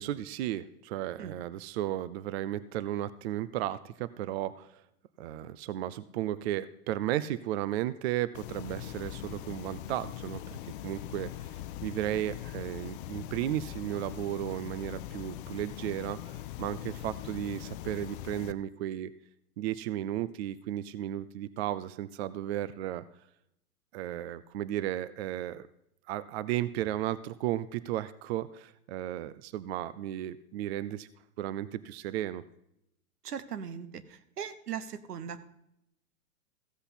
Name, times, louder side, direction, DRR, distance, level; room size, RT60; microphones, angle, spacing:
voice 1, 0.0-4.8 5.2-11.5 11.8-19.1 19.6-23.0 23.9-25.7 26.1-31.1 31.4-32.4, right 13 dB, 45° right, 17 dB, 0.5 m, -34 dB
sound 1, 8.3-18.5, left 13 dB, 35° left, 0.5 m, -41 dB
voice 2, 33.2-35.4, right 8 dB, 80° right, 13 dB, 1.1 m, -39 dB
15.0 x 7.8 x 4.2 m, 0.78 s
hypercardioid pair, 115°, 46 cm